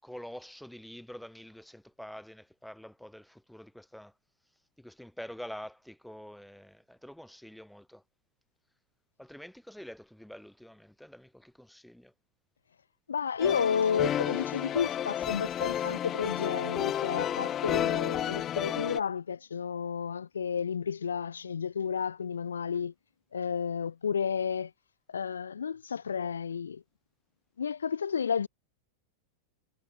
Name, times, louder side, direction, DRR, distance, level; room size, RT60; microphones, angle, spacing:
voice 1, 0.0-4.1 4.8-8.0 9.2-12.1, equal, ahead, 7.5 m, -46 dB
voice 2, 13.1-22.9 23.3-24.7 25.1-26.8 27.6-28.5, left 7 dB, 70° left, 1.3 m, -31 dB
sound 1, 13.4-19.0, left 10 dB, 30° left, 2.3 m, -31 dB
figure-of-eight pair, 90°, 0 cm